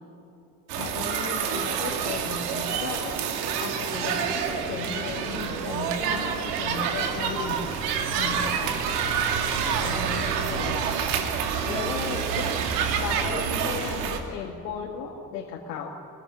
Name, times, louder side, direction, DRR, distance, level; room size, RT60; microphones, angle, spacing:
sound 1, 0.7-14.2, right 7 dB, 70° right, 2.5 m, -27 dB
voice 1, 0.8-3.2 3.6-7.9 8.1-8.8 9.6-11.0 11.7-12.5 13.0-15.9, left 6 dB, 70° left, 1 dB, 2.0 m, -35 dB
24.0 x 20.5 x 9.9 m, 2.7 s
figure-of-eight pair, 55°, 48 cm